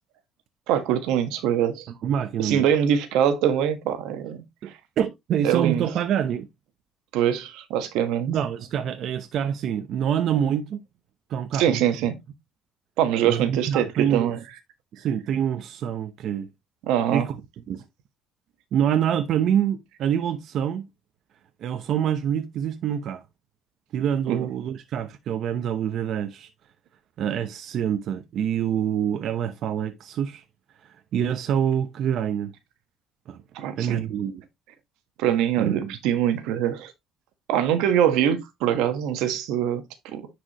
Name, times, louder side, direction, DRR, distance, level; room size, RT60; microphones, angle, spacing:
voice 1, 0.7-1.9 2.4-4.8 5.4-5.9 7.1-8.3 11.5-12.2 13.0-14.4 16.9-17.3 24.3-24.5 33.5-34.1 35.2-36.9 37.5-40.3, right 9 dB, 85° right, 1.4 m, -23 dB
voice 2, 2.0-2.7 4.6-6.5 8.3-10.8 11.3-11.8 13.2-14.3 14.9-16.5 17.1-17.4 17.7-17.8 18.7-20.9 21.6-23.2 23.9-26.5 27.2-30.4 30.8-32.5 33.3-33.4 33.8-34.4 35.6-36.0, right 9 dB, 60° right, 0.8 m, -26 dB
10.0 x 4.8 x 3.0 m
cardioid pair, 120°, 0 cm